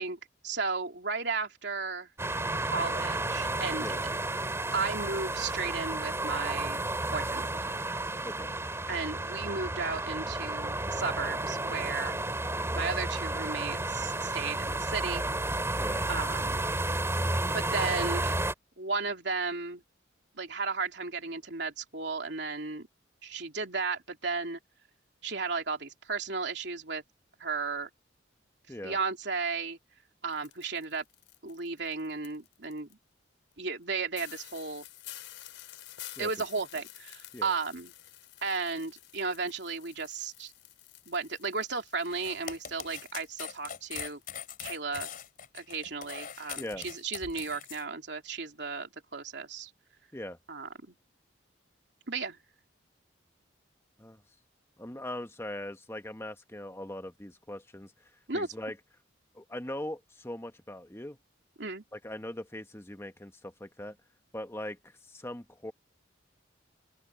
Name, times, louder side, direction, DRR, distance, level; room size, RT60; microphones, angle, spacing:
voice 1, 0.0-2.1 2.7-4.2 4.7-6.8 7.1-7.8 8.9-12.1 12.7-15.3 16.1-16.7 17.5-18.4 18.8-19.8 20.4-22.9 23.2-24.6 25.2-27.0 27.4-27.9 28.8-29.8 30.2-31.0 31.4-33.0 33.6-34.8 36.2-37.9 38.4-40.5 41.1-44.2 44.6-45.1 45.5-49.7 50.5-50.9 52.1-52.4 58.3-58.5 61.6-61.8, right 4 dB, 65° right, 3.2 m, -34 dB
sound 1, 2.2-18.5, right 2 dB, 15° right, 3.0 m, -32 dB
sound 2, 30.3-32.9 33.5-33.6 33.8-33.9 34.1-44.2 44.5-45.5 45.8-45.9 46.3-46.4, left 14 dB, 85° left, 4.4 m, -50 dB
sound 3, 42.0-47.8, left 8 dB, 50° left, 3.5 m, -42 dB
voice 2, 46.6-46.9 50.1-50.4 54.0-54.2 54.8-57.9 58.3-58.8 59.3-61.2 61.9-64.0 64.3-65.7, left 1 dB, 15° left, 1.3 m, -40 dB
open air
head